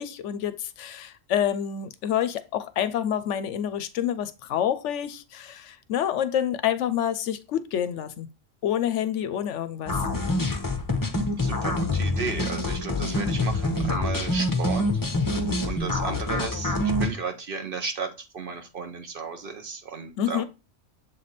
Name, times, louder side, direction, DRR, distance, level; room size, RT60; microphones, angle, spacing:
voice 1, 0.0-8.3 8.6-10.0 20.2-20.5, left 10 dB, 70° left, 0.9 m, -28 dB
sound 1, 9.9-17.1, left 2 dB, 20° left, 0.7 m, -26 dB
voice 2, 11.4-14.9 15.7-20.5, right 5 dB, 50° right, 0.9 m, -34 dB
7.1 x 3.3 x 4.0 m
omnidirectional pair, 1.3 m